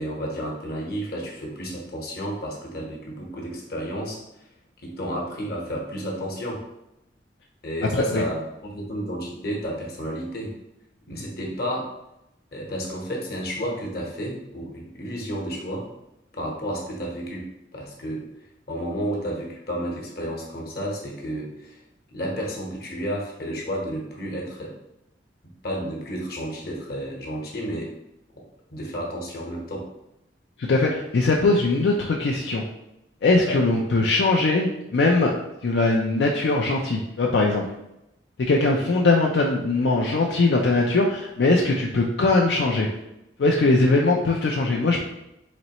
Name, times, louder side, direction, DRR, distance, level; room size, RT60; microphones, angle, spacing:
voice 1, 0.0-4.2 4.8-6.6 7.6-10.5 11.1-11.9 12.5-15.9 16.3-17.4 17.7-18.2 18.7-21.8 22.1-24.7 25.6-27.9 28.7-29.8 33.4-33.6, equal, 60° left, -2 dB, 1.0 m, -31 dB
voice 2, 30.6-32.6 33.2-35.3 35.6-37.6 38.4-42.9 43.4-45.0, left 3 dB, 75° left, -1 dB, 0.4 m, -21 dB
4.1 x 3.1 x 2.9 m, 0.87 s
head